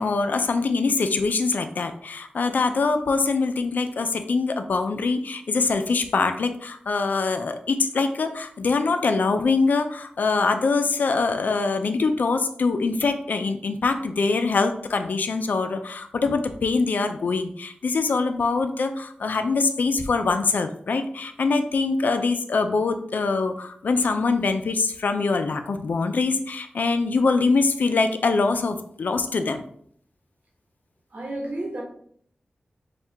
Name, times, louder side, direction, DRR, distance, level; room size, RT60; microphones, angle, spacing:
voice 1, 0.0-29.6, left 4 dB, 75° left, 8 dB, 0.4 m, -23 dB
voice 2, 31.1-31.8, right 1 dB, 60° right, 0 dB, 1.0 m, -31 dB
4.4 x 2.4 x 3.4 m, 0.62 s
wide cardioid pair, 100°, 3 cm